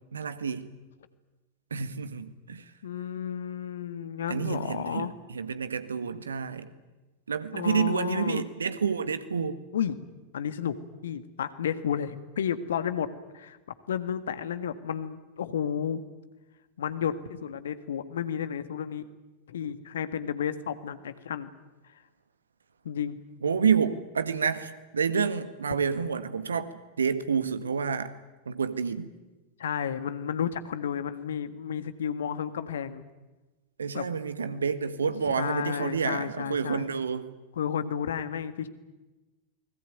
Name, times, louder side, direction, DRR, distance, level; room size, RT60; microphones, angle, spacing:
voice 1, 0.1-0.7 1.7-2.6 4.3-6.7 7.3-9.6 23.4-26.7 27.0-28.1 28.4-29.1 33.8-37.3, right 6 dB, 70° right, 1.8 m, -29 dB
voice 2, 2.8-5.1 7.5-8.4 9.7-10.0 10.3-10.8 11.0-13.1 13.3-13.6 13.9-16.0 16.8-19.1 19.5-21.5 22.8-23.2 29.6-33.0 33.9-34.1 34.5-34.6 35.3-36.9 37.5-38.7, left 8 dB, 65° left, 1.8 m, -32 dB
29.0 x 20.5 x 9.4 m
figure-of-eight pair, 90°, 0 cm